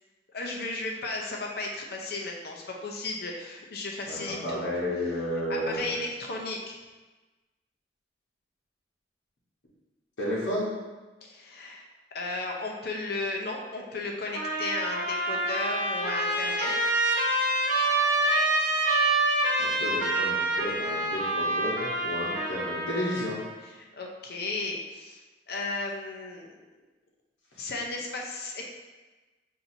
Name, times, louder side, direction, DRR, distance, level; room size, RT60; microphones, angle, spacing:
voice 1, 0.3-4.7 5.5-6.8 11.2-11.9 12.1-16.7 23.9-25.2 25.5-26.6 27.6-28.7, left 2 dB, 60° left, 0 dB, 0.6 m, -34 dB
voice 2, 4.1-5.9 10.2-10.7 19.6-23.4, equal, 75° left, -7 dB, 1.1 m, -32 dB
Trumpet, 14.3-23.5, right 2 dB, 45° right, 0.8 m, -27 dB
5.8 x 2.7 x 2.7 m, 1.2 s
head